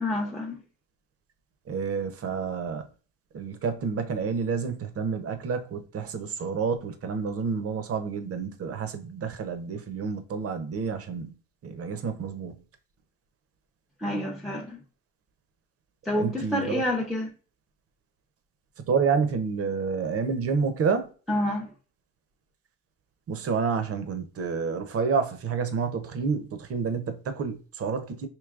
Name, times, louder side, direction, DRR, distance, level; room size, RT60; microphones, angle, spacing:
voice 1, 0.0-0.6 14.0-14.8 16.1-17.3 21.3-21.7, left 1 dB, ahead, 0.6 m, -28 dB
voice 2, 1.7-2.9 3.3-11.3 11.6-12.6 16.2-16.8 18.9-21.1 23.3-28.3, right 5 dB, 50° right, 0.7 m, -29 dB
4.6 x 2.9 x 2.4 m
cardioid pair, 90°, 30 cm